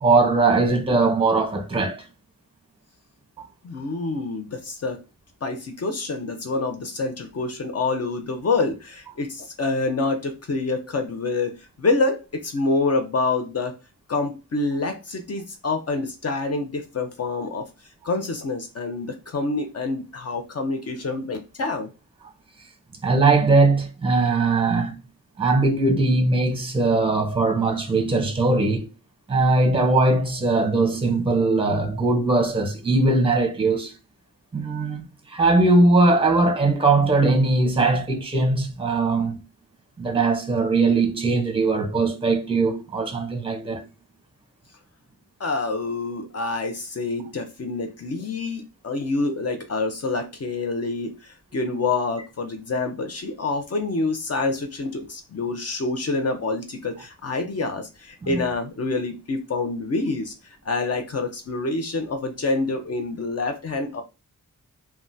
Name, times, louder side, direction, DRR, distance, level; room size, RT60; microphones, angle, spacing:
voice 1, 0.0-2.0 3.4-3.5 23.0-25.0 25.4-28.9 29.3-33.9 34.5-39.4 40.0-43.8 58.2-58.4, right 3 dB, 15° right, 0.7 m, -20 dB
voice 2, 3.6-5.0 5.4-13.7 14.1-17.7 18.0-21.9 45.4-60.3 60.6-64.0, left 3 dB, 50° left, 0.6 m, -27 dB
3.5 x 2.3 x 2.6 m
wide cardioid pair, 110°, 33 cm